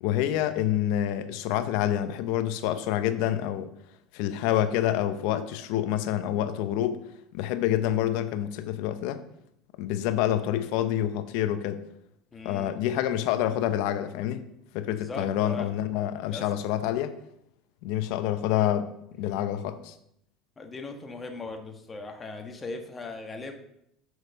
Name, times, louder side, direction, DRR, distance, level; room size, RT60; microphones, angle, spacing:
voice 1, 0.0-3.7 4.1-7.0 7.3-9.2 9.8-11.8 12.4-14.4 14.7-17.1 17.8-18.9 19.2-19.9, left 11 dB, 70° left, 11 dB, 0.7 m, -27 dB
voice 2, 12.3-12.7 14.8-15.7 16.3-16.5 20.6-23.5, left 3 dB, 25° left, 4 dB, 1.3 m, -39 dB
6.3 x 4.8 x 6.7 m, 0.78 s
supercardioid pair, 100°, 0 cm